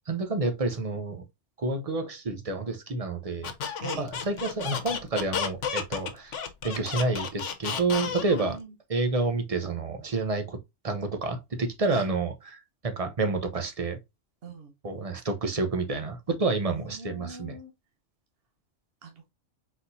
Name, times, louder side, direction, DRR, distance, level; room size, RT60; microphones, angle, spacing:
voice 1, 0.1-1.2 1.6-3.5 4.0-6.4 6.6-8.6 8.9-10.6 10.8-14.0 14.8-17.6, right 3 dB, 35° right, 0.7 m, -29 dB
Squeak, 3.4-8.5, left 7 dB, 85° left, 1.1 m, -32 dB
voice 2, 7.9-8.7 11.9-12.1 14.4-14.7 16.7-17.7 19.0-19.3, right 3 dB, 55° right, 1.1 m, -41 dB
4.1 x 4.1 x 2.6 m
omnidirectional pair, 1.2 m